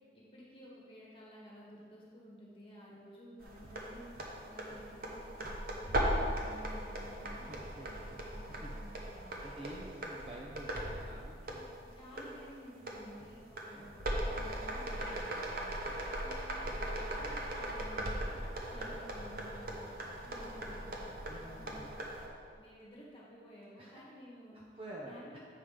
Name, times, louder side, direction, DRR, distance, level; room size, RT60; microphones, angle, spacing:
voice 1, 0.1-9.7 11.8-16.0 16.5-18.3 18.6-20.0 20.2-21.8 22.6-24.6 25.0-25.4, equal, 30° left, -6 dB, 1.6 m, -54 dB
sound 1, 3.4-22.3, right 1 dB, 55° right, 1.0 m, -39 dB
voice 2, 7.4-7.9 8.4-8.7 9.4-11.7 13.7-13.9 16.2-16.8 18.7-19.0 21.3-22.1 23.8-24.0 24.5-25.4, right 1 dB, 30° right, -4 dB, 0.7 m, -50 dB
7.5 x 5.0 x 5.1 m, 2.2 s
head